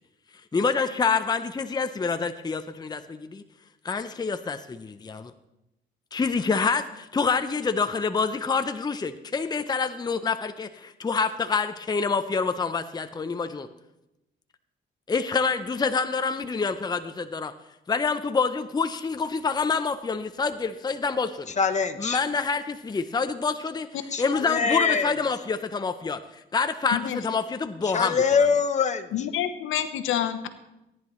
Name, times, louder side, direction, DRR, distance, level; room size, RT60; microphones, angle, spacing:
voice 1, 0.5-3.4 3.8-5.3 6.1-13.7 15.1-17.5 17.9-21.5 22.0-26.2 26.5-28.2, left 5 dB, 20° left, 9 dB, 0.6 m, -27 dB
voice 2, 21.6-22.2 24.1-25.1 27.9-29.1, left 5 dB, 35° left, 8 dB, 1.0 m, -23 dB
voice 3, 29.1-30.5, left 10 dB, 85° left, 9 dB, 1.0 m, -28 dB
17.0 x 10.5 x 3.1 m, 0.91 s
cardioid pair, 90°, 20 cm